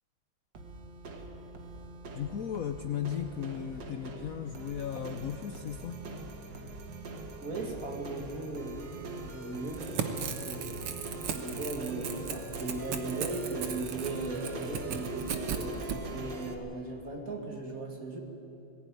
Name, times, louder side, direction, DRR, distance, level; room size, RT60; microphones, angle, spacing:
sound 1, 0.5-16.5, right 2 dB, 55° right, 2.2 m, -42 dB
voice 1, 2.1-6.1, left 9 dB, 85° left, 7 dB, 0.7 m, -36 dB
voice 2, 7.4-10.1 10.4-11.1 11.3-18.2, right 2 dB, 40° right, 2 dB, 2.6 m, -38 dB
Crackle / Tearing, 9.6-16.0, right 7 dB, 85° right, 2.2 m, -37 dB
20.0 x 16.0 x 9.4 m, 3.0 s
omnidirectional pair, 2.4 m